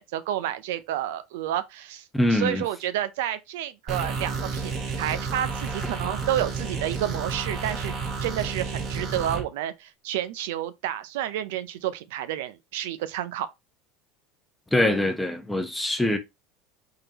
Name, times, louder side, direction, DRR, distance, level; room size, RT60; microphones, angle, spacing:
voice 1, 0.0-2.0 2.3-8.0 8.2-13.5, right 12 dB, 80° right, 0.5 m, -30 dB
voice 2, 2.1-2.6 14.7-16.2, left 1 dB, 5° left, 0.8 m, -23 dB
sound 1, 3.9-9.4, right 4 dB, 40° right, 1.1 m, -31 dB
3.7 x 3.4 x 2.8 m
supercardioid pair, 115°, 0 cm